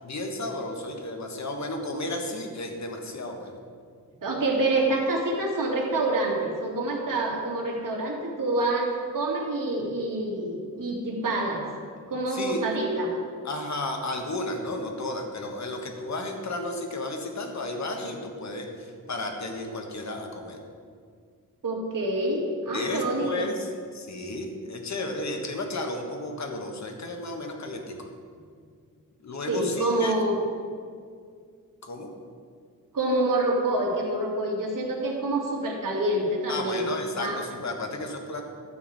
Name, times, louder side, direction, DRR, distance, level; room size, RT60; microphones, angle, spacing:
voice 1, 0.0-3.6 12.3-12.6 13.4-20.6 22.7-28.1 29.2-30.1 31.8-32.1 36.5-38.4, left 2 dB, 55° left, 3 dB, 1.6 m, -33 dB
voice 2, 4.2-11.6 12.1-13.1 21.6-23.5 29.5-30.4 32.9-36.8 37.1-37.4, right 2 dB, 70° right, -1 dB, 2.4 m, -27 dB
12.5 x 4.8 x 8.7 m, 2.1 s
wide cardioid pair, 110°, 33 cm